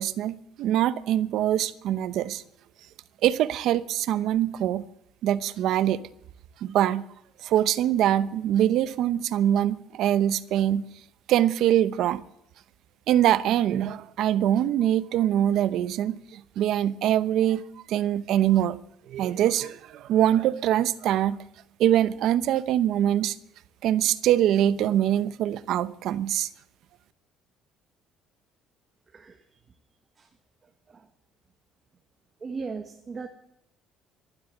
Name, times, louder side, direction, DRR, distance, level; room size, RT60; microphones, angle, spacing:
voice 1, 0.0-2.4 3.2-4.9 5.2-6.0 6.6-7.0 7.4-10.9 11.3-12.2 13.1-17.6 17.9-18.8 19.1-21.4 21.8-23.3 23.8-26.5, right 11 dB, 60° right, 0.8 m, -23 dB
voice 2, 29.1-29.4 30.2-30.3 30.9-31.1 32.4-33.3, right 4 dB, 25° right, 1.3 m, -37 dB
15.0 x 12.0 x 7.9 m
cardioid pair, 145°, 0 cm